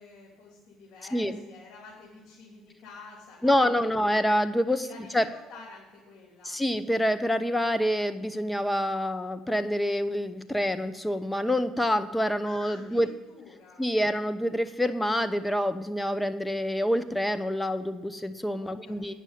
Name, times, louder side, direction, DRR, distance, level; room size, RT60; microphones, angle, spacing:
voice 1, 0.0-4.1 4.7-6.6 12.4-13.9 18.6-19.1, left 4 dB, 60° left, -4 dB, 3.1 m, -49 dB
voice 2, 3.4-4.9 5.1-5.2 6.4-13.1 13.8-19.1, equal, 10° left, 11 dB, 0.9 m, -27 dB
9.1 x 6.2 x 8.3 m, 1.2 s
hypercardioid pair, 65°, 0 cm